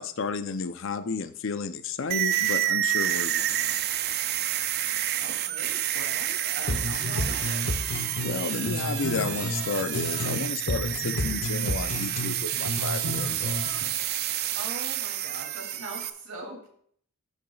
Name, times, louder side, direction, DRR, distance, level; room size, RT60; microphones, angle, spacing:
voice 1, 0.0-3.8 8.2-13.7, left 4 dB, 60° left, 11 dB, 0.5 m, -32 dB
sound 1, 2.1-16.1, right 12 dB, 45° right, 0.4 m, -29 dB
voice 2, 5.2-7.6 14.5-16.7, right 2 dB, 80° right, 0 dB, 2.8 m, -41 dB
sound 2, 6.7-10.4 10.7-13.9, left 1 dB, 90° left, 1.1 m, -31 dB
12.5 x 6.9 x 2.4 m, 0.63 s
head